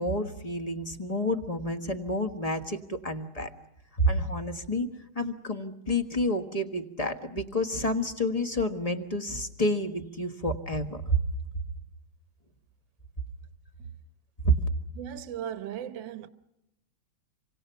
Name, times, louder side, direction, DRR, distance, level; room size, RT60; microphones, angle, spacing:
voice 1, 0.0-3.5 3.9-4.9 5.1-11.2 14.4-14.6, equal, 20° left, 1.3 m, -29 dB
voice 2, 15.0-16.3, right 10 dB, 70° right, 1.7 m, -37 dB
28.0 x 25.0 x 5.7 m
omnidirectional pair, 2.2 m